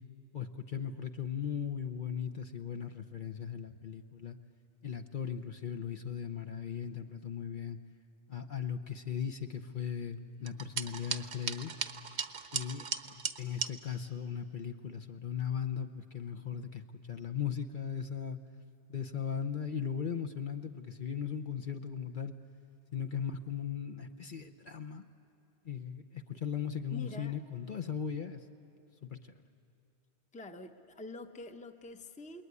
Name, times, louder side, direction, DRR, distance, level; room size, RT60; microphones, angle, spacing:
voice 1, 0.3-4.4 4.8-7.8 8.3-11.7 12.5-18.4 18.9-22.3 22.9-25.0 25.6-28.4 29.0-29.4, left 7 dB, 50° left, 6 dB, 0.9 m, -38 dB
sound 1, 10.5-13.7, right 6 dB, 70° right, 1.1 m, -37 dB
voice 2, 26.9-27.4 30.3-32.4, left 3 dB, 10° left, 7 dB, 0.7 m, -46 dB
28.0 x 21.0 x 9.6 m, 2.7 s
omnidirectional pair, 1.2 m